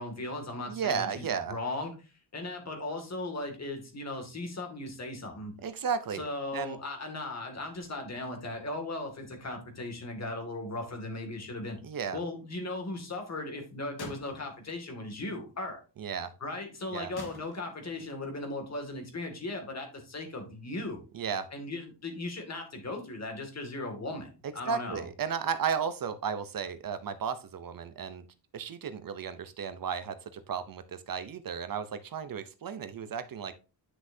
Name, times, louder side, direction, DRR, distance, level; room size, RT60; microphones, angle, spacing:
voice 1, 0.0-5.5 6.2-11.8 12.1-15.8 16.4-21.0 21.5-25.0, left 2 dB, 40° left, 4 dB, 2.3 m, -37 dB
voice 2, 0.7-1.6 5.6-6.2 6.5-6.8 11.8-12.2 16.0-16.3 16.9-17.1 21.1-21.5 24.7-28.2 28.5-33.6, right 6 dB, 55° right, 12 dB, 0.7 m, -34 dB
sound 1, 14.0-15.0 15.3-15.4 17.2-18.3, left 2 dB, 65° left, 2.1 m, -46 dB
9.8 x 6.2 x 2.7 m, 0.32 s
wide cardioid pair, 160°, 41 cm